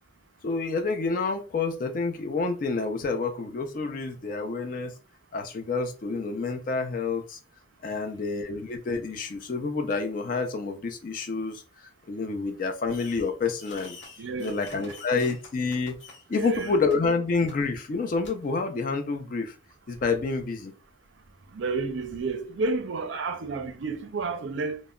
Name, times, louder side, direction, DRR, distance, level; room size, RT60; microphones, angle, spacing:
voice 1, 0.4-4.9 5.3-7.4 7.8-14.0 14.4-16.0 16.3-19.6 19.9-20.7, left 4 dB, 45° left, 0.3 m, -28 dB
Fireworks, 12.9-13.3 13.6-16.2 16.5-16.9 17.5-17.6 18.2-18.3, left 3 dB, 65° left, 0.8 m, -47 dB
voice 2, 14.2-15.0 16.3-16.8 21.5-24.8, right 3 dB, 70° right, 0.4 m, -31 dB
2.1 x 2.0 x 3.6 m
head